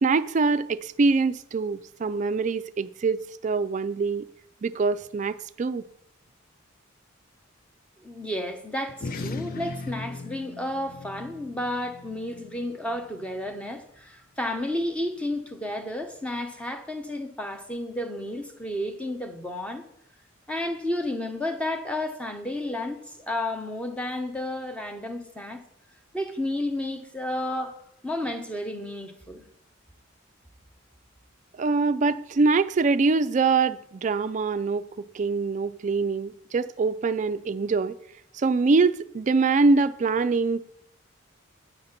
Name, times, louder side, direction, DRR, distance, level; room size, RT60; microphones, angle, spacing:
voice 1, 0.0-4.2 4.6-5.8 31.6-34.9 35.1-37.9 38.4-40.6, right 4 dB, 35° right, 0.3 m, -24 dB
voice 2, 8.0-19.8 20.5-25.6 26.1-27.7 28.0-29.4, left 1 dB, 5° left, 0.8 m, -32 dB
sound 1, 8.9-13.7, left 3 dB, 45° left, 0.5 m, -39 dB
9.6 x 4.2 x 6.5 m
head